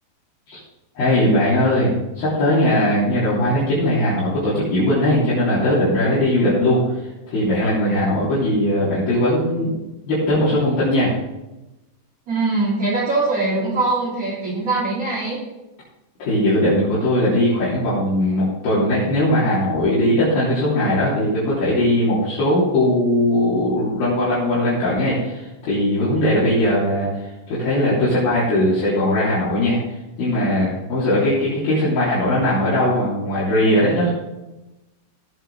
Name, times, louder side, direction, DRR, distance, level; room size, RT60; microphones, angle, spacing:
voice 1, 1.0-6.8 7.3-9.7 10.1-11.1 16.2-27.1 27.5-29.8 30.2-34.1, left 1 dB, 60° left, -10 dB, 5.2 m, -19 dB
voice 2, 12.3-15.4, right 3 dB, 35° right, -9 dB, 4.1 m, -22 dB
17.0 x 8.0 x 3.8 m, 1.0 s
omnidirectional pair, 4.8 m